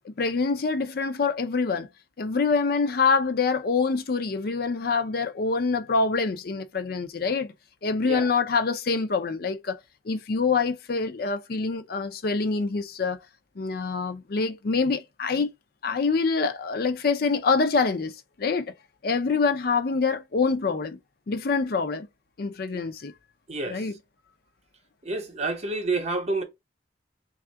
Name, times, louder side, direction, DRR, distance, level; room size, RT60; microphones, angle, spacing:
voice 1, 0.0-1.9 2.2-7.5 7.8-9.8 10.1-13.2 13.6-15.5 15.8-18.1 18.4-18.7 19.0-21.0 21.3-22.1 22.4-23.1 23.7-23.9, left 4 dB, 55° left, 0.5 m, -25 dB
voice 2, 23.5-23.9 25.0-26.4, right 3 dB, 35° right, 0.8 m, -29 dB
3.4 x 2.4 x 4.5 m
head